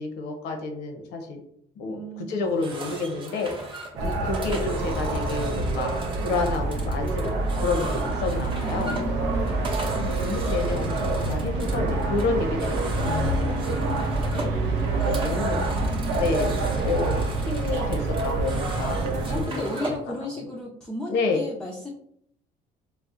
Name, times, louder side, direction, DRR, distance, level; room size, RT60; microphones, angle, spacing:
voice 1, 0.0-1.4 1.8-2.0 2.3-3.8 4.3-5.9 6.2-9.3 9.9-15.6 16.2-16.5 16.8-20.0 21.1-21.4, left 4 dB, 90° left, 3 dB, 0.7 m, -30 dB
voice 2, 1.9-2.6 4.0-4.3 8.6-9.7 12.6-12.7 15.3-16.8 19.3-21.9, left 1 dB, 5° left, -3 dB, 0.4 m, -35 dB
sound 1, 2.4-20.1, right 2 dB, 30° right, 0.7 m, -38 dB
sound 2, 4.0-19.4, right 2 dB, 85° right, 0.6 m, -26 dB
4.1 x 2.0 x 2.4 m, 0.71 s
cardioid pair, 110°, 17 cm